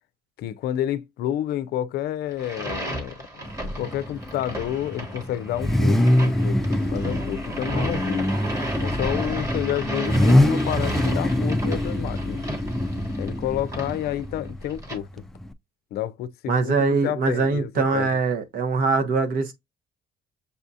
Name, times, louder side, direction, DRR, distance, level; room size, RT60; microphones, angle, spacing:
voice 1, 0.4-3.2 3.6-8.3 8.8-12.4 13.2-15.1 15.9-18.1, left 12 dB, 70° left, 0.5 m, -30 dB
sound 1, 2.3-15.0, right 1 dB, 20° right, 1.3 m, -34 dB
Car / Idling / Accelerating revving vroom, 3.4-15.5, left 1 dB, ahead, 0.4 m, -24 dB
voice 2, 16.5-19.5, right 4 dB, 60° right, 1.0 m, -22 dB
6.8 x 2.3 x 2.6 m
cardioid pair, 110°, 17 cm